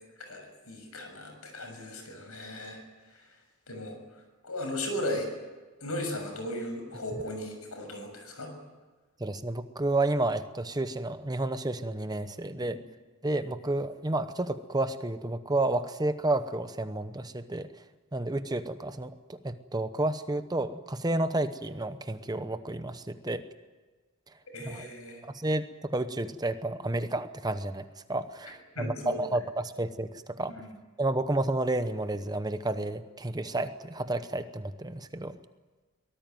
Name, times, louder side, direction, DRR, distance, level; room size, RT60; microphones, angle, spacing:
voice 1, 0.2-2.8 3.1-3.2 3.7-4.0 4.4-5.3 5.8-8.5 12.6-12.8 24.5-25.2 28.8-29.2 30.5-30.7, left 1 dB, 75° left, 5 dB, 6.9 m, -36 dB
voice 2, 9.2-12.8 13.2-17.7 18.1-23.4 24.6-24.8 25.2-30.5 31.0-35.4, right 2 dB, 20° right, 10 dB, 0.9 m, -31 dB
24.0 x 19.0 x 9.3 m, 1.3 s
head